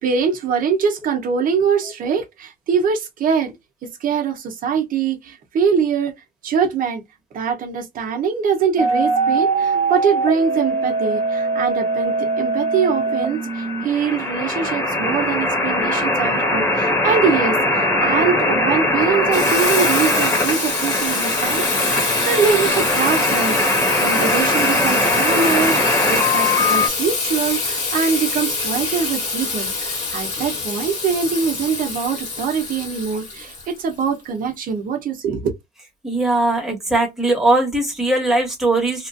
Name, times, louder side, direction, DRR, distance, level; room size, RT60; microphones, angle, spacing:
voice 1, 0.0-3.5 3.8-6.1 6.4-7.0 7.3-35.5, right 6 dB, 55° right, 0.9 m, -23 dB
sound 1, 8.8-26.9, equal, 15° left, 1.4 m, -20 dB
Water tap faucet / Sink (filling or washing), 19.3-34.1, left 3 dB, 45° left, 1.4 m, -25 dB
voice 2, 36.0-39.1, right 2 dB, ahead, 1.5 m, -19 dB
3.0 x 2.4 x 2.5 m
cardioid pair, 110°, 17 cm